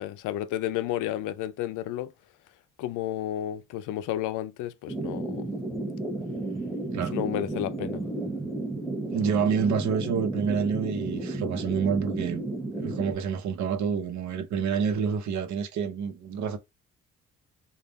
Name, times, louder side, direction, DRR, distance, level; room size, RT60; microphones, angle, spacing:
voice 1, 0.0-2.1 2.8-5.4 7.1-8.0, left 12 dB, 85° left, 0.5 m, -31 dB
sound 1, 4.9-13.1, right 2 dB, ahead, 1.1 m, -33 dB
voice 2, 9.1-12.4 12.7-16.6, right 6 dB, 70° right, 0.8 m, -28 dB
3.4 x 2.4 x 3.9 m
cardioid pair, 90°, 30 cm